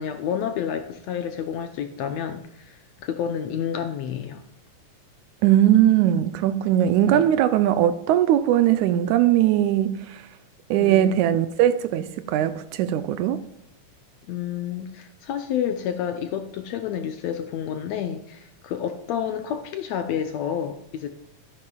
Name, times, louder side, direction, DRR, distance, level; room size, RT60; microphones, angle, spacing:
voice 1, 0.0-4.4 7.1-7.2 10.8-11.2 14.3-21.1, left 8 dB, 75° left, 1.7 m, -29 dB
voice 2, 5.4-10.3 10.7-13.4, right 11 dB, 80° right, 1.8 m, -20 dB
13.0 x 11.0 x 2.3 m
omnidirectional pair, 3.7 m